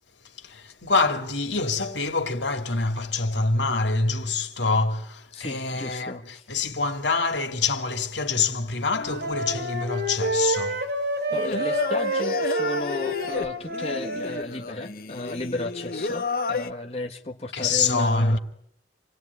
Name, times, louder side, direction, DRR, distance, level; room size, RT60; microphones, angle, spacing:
voice 1, 0.3-10.8 17.5-18.4, left 3 dB, 75° left, 2.7 m, -26 dB
voice 2, 5.3-6.5 10.8-10.9 11.3-18.4, left 2 dB, 35° left, 1.5 m, -34 dB
Wind instrument woodwind instrument, 8.9-14.4, right 1 dB, 60° right, 5.5 m, -28 dB
Singing, 11.3-16.7, left 4 dB, 50° left, 1.2 m, -31 dB
28.0 x 21.0 x 9.7 m
head